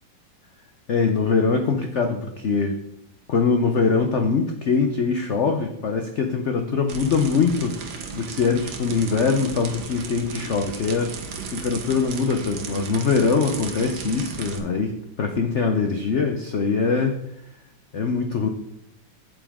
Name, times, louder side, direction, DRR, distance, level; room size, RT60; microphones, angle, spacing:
voice 1, 0.9-2.8 3.3-7.8 8.1-11.1 11.5-17.2 17.9-18.5, left 5 dB, 70° left, 5 dB, 0.7 m, -22 dB
sound 1, 6.9-14.6, right 5 dB, 75° right, 1.7 m, -35 dB
8.7 x 8.2 x 3.6 m, 0.77 s
omnidirectional pair, 2.1 m